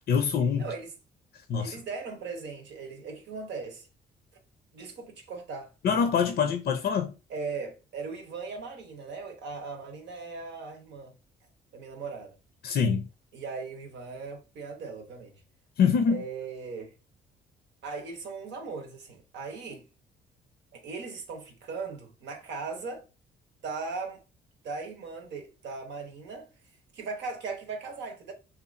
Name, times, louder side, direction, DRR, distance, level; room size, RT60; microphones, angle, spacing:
voice 1, 0.1-0.7 1.5-1.7 5.8-7.1 12.6-13.1 15.8-16.2, left 6 dB, 55° left, 0.5 m, -24 dB
voice 2, 0.6-0.9 1.6-3.9 4.7-5.7 7.3-11.1 11.7-12.3 13.3-15.3 16.1-16.9 17.8-19.8 20.7-23.0 23.6-24.2 24.6-26.5 26.9-28.3, right 4 dB, 65° right, 0.8 m, -38 dB
2.8 x 2.3 x 2.5 m
hypercardioid pair, 55°, 20 cm